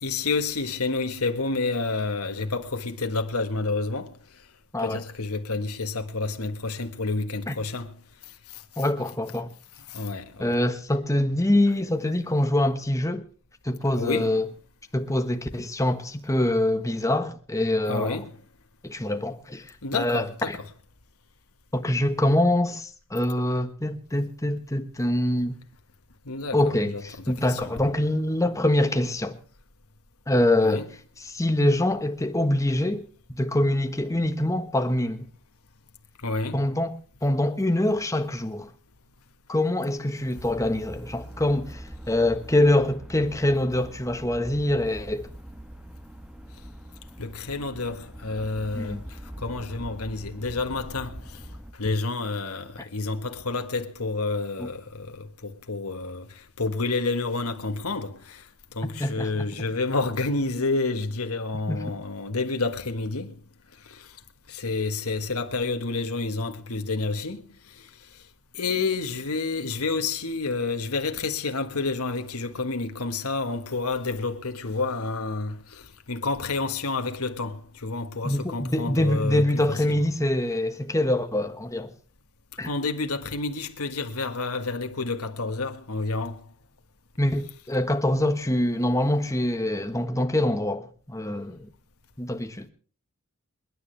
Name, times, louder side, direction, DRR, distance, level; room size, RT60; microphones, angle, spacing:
voice 1, 0.0-4.1 4.8-7.9 9.9-10.6 14.0-14.4 17.9-18.3 19.8-20.7 26.2-27.8 30.6-30.8 36.2-36.6 47.2-49.0 49.4-51.2 51.8-58.4 58.7-63.3 63.9-64.0 64.5-67.4 68.5-75.8 76.1-80.0 82.6-86.4, left 3 dB, 80° left, 1.6 m, -29 dB
voice 2, 8.8-9.5 10.4-13.2 13.6-14.5 14.9-18.2 18.8-19.6 19.9-20.6 21.7-25.6 26.5-29.4 30.3-30.8 31.2-33.0 33.3-35.3 36.5-36.9 37.2-38.7 39.5-45.3 48.7-49.0 54.6-54.7 59.0-59.5 61.7-61.8 78.2-81.9 82.6-82.7 87.2-91.7 92.2-92.7, left 1 dB, 15° left, 1.3 m, -24 dB
sound 1, 40.4-51.7, equal, 5° right, 1.2 m, -42 dB
28.5 x 9.9 x 3.3 m
head